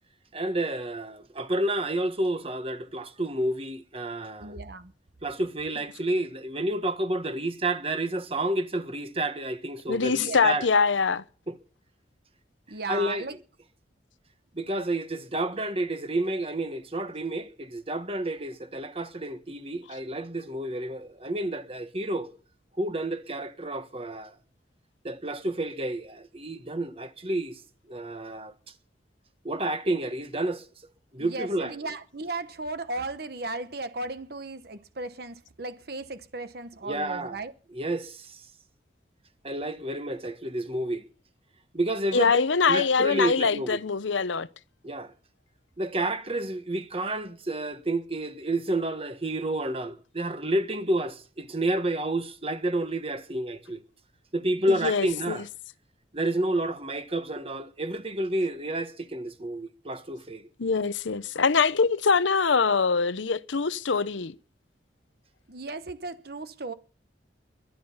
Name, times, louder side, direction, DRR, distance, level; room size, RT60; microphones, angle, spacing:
voice 1, 0.3-4.5 5.2-10.7 11.5-11.6 12.9-13.3 14.5-22.3 22.8-24.3 25.0-27.6 27.9-28.5 29.4-30.6 31.1-31.7 36.8-37.4 37.7-38.4 39.4-41.1 41.7-42.4 42.7-43.8 44.8-45.1 45.8-53.8 54.3-55.4 56.1-60.5, right 1 dB, 30° right, 1.4 m, -30 dB
voice 2, 4.4-4.9 10.1-10.5 12.7-13.4 31.2-37.5 54.6-54.7 65.5-66.7, right 3 dB, 55° right, 1.0 m, -36 dB
voice 3, 9.9-11.2 42.1-44.5 54.7-55.4 60.6-64.3, left 5 dB, 90° left, 0.8 m, -24 dB
22.0 x 10.5 x 5.7 m
head